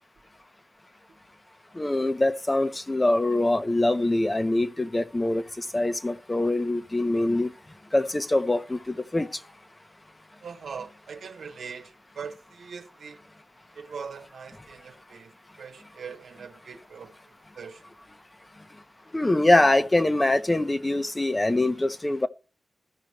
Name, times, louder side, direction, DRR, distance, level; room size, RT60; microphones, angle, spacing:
voice 1, 1.7-7.5 7.9-9.4 19.1-22.3, left 2 dB, 25° left, 1.1 m, -24 dB
voice 2, 10.4-13.2 13.7-17.2 17.5-17.8, right 6 dB, 80° right, 1.1 m, -41 dB
15.5 x 5.1 x 3.2 m
cardioid pair, 50°, 0 cm